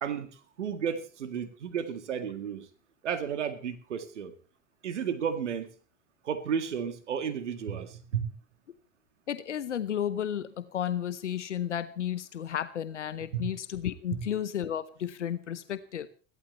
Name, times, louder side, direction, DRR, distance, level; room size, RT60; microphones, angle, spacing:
voice 1, 0.0-2.7 3.0-4.3 4.8-5.7 6.2-8.3 13.3-13.5 14.1-14.3, right 7 dB, 85° right, 9 dB, 2.0 m, -33 dB
voice 2, 9.3-16.1, left 10 dB, 90° left, 14 dB, 0.9 m, -33 dB
30.0 x 12.5 x 3.1 m, 0.36 s
hypercardioid pair, 70°, 35 cm